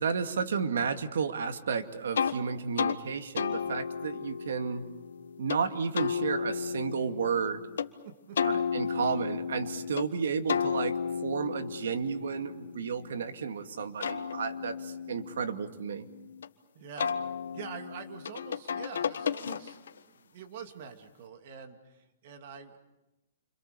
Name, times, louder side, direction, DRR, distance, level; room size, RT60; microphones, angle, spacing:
voice 1, 0.0-4.9 5.4-7.6 8.4-11.0 11.2-16.1, right 6 dB, 80° right, 7 dB, 2.2 m, -32 dB
sound 1, 2.1-2.4 2.8-3.0 3.4-5.6 5.9-7.9 8.4-10.1 10.5-13.4 13.8-16.5 17.0-20.0, left 6 dB, 90° left, 1.5 m, -33 dB
voice 2, 8.0-9.1 16.7-17.2 17.5-22.8, right 6 dB, 45° right, 6 dB, 2.7 m, -46 dB
29.0 x 26.0 x 7.0 m, 0.98 s
hypercardioid pair, 165°, 0 cm